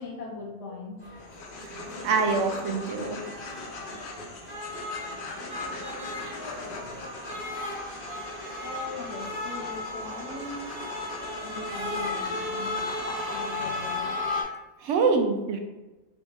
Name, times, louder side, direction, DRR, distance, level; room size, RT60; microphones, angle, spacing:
voice 1, 0.0-1.6 8.6-10.7 11.4-12.8 13.3-14.1, left 3 dB, 85° left, 0 dB, 1.2 m, -40 dB
sound 1, 1.0-14.4, left 2 dB, 40° right, 0.9 m, -35 dB
sound 2, 1.2-14.0, left 2 dB, 55° left, 0.7 m, -42 dB
voice 2, 1.7-3.2 14.8-15.6, right 4 dB, 90° right, 5 dB, 0.9 m, -25 dB
3.5 x 2.3 x 4.0 m, 1.1 s
omnidirectional pair, 1.2 m